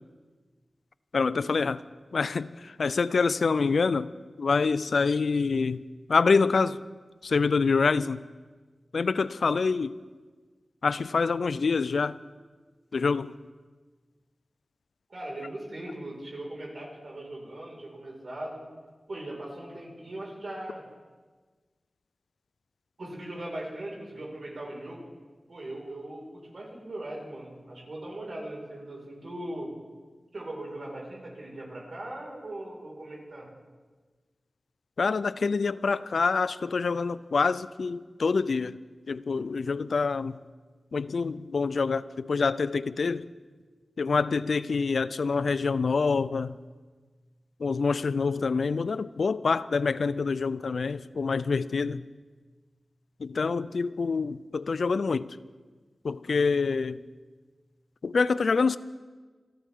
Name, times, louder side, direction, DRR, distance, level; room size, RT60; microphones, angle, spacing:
voice 1, 1.1-1.8 2.1-4.1 4.4-5.8 6.1-6.8 7.2-8.2 8.9-9.9 10.8-12.2 12.9-13.3 35.0-38.8 39.1-40.4 40.9-43.3 44.0-46.6 47.6-52.0 53.2-55.4 56.0-57.0 58.0-58.8, left 4 dB, 85° left, 0.4 m, -26 dB
voice 2, 15.1-18.6 19.1-20.8 23.0-25.1 25.5-29.7 30.3-33.5, right 1 dB, 65° right, 5.0 m, -39 dB
28.0 x 12.0 x 3.7 m
wide cardioid pair, 100°, 0 cm